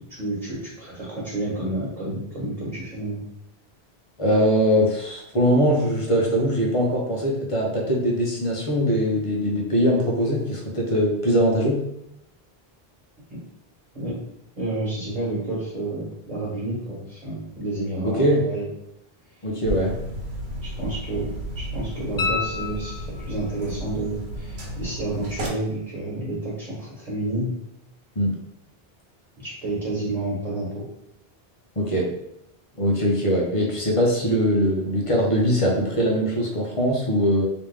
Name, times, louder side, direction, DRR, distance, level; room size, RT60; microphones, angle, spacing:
voice 1, 0.1-3.2 13.9-14.2 14.6-18.6 20.6-27.5 29.4-30.8, right 2 dB, 40° right, -8 dB, 1.6 m, -30 dB
voice 2, 4.2-11.8 18.0-18.4 19.4-19.9 28.2-28.3 31.8-32.1 32.8-37.4, equal, 35° left, -1 dB, 0.9 m, -21 dB
sound 1, 19.6-25.5, right 1 dB, 90° right, 1.1 m, -33 dB
sound 2, 22.2-23.5 26.3-26.4, left 5 dB, 55° left, 0.4 m, -29 dB
3.5 x 2.9 x 3.3 m, 0.80 s
omnidirectional pair, 1.0 m